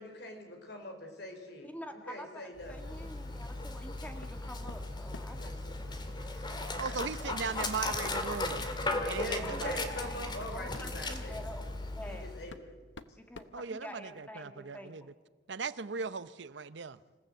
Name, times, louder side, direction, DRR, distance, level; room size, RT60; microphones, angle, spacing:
voice 1, 0.0-2.7 5.3-5.7 6.1-6.4 9.1-11.4 12.1-12.7, left 1 dB, 60° left, 4 dB, 4.3 m, -43 dB
voice 2, 1.6-6.0 9.3-9.6 10.5-12.2 13.1-15.1, equal, 10° left, 5 dB, 1.7 m, -47 dB
Dog, 2.6-12.5, left 2 dB, 25° left, 2.0 m, -37 dB
sound 1, 4.2-4.4 4.7-5.5 7.0-7.2 7.6-7.7 8.2-8.4 9.3-9.4 9.8-11.0 12.0-12.1 12.5-14.3, left 3 dB, 80° left, 1.0 m, -51 dB
voice 3, 6.8-8.7 9.1-9.9 13.5-15.1 15.5-17.0, right 5 dB, 70° right, 16 dB, 0.7 m, -38 dB
27.0 x 15.5 x 7.9 m, 1.4 s
head